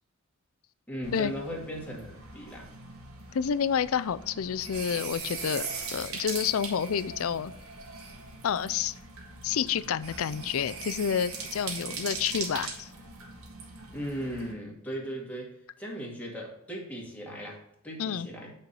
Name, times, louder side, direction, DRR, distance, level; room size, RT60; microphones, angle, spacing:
voice 1, 0.9-2.7 13.9-18.5, equal, 5° left, -3 dB, 2.1 m, -38 dB
sound 1, 1.0-14.5, right 4 dB, 85° right, 1.8 m, -40 dB
voice 2, 3.3-7.5 8.4-8.9 9.4-12.9 18.0-18.3, left 7 dB, 75° left, 16 dB, 0.4 m, -29 dB
8.8 x 4.4 x 5.4 m, 0.74 s
head